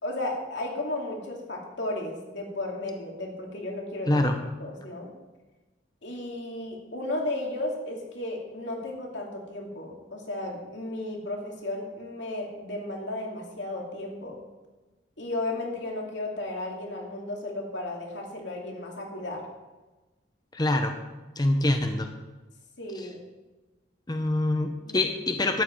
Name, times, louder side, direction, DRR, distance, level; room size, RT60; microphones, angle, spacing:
voice 1, 0.0-4.2 4.6-5.1 6.0-14.4 15.2-19.5 22.8-23.2 24.9-25.1, left 2 dB, 70° left, 0 dB, 2.5 m, -34 dB
voice 2, 4.1-4.4 20.5-20.9 21.4-22.1 23.0-23.1 24.1-25.6, left 1 dB, 20° left, 6 dB, 0.7 m, -25 dB
13.0 x 9.6 x 4.6 m, 1.2 s
head